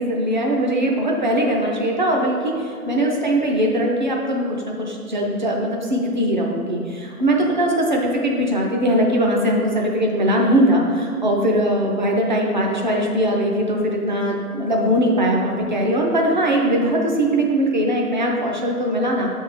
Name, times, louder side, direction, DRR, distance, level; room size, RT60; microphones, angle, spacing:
voice 1, 0.0-19.3, equal, 30° right, -1 dB, 0.5 m, -20 dB
6.9 x 3.6 x 5.0 m, 2.2 s
hypercardioid pair, 175°, 46 cm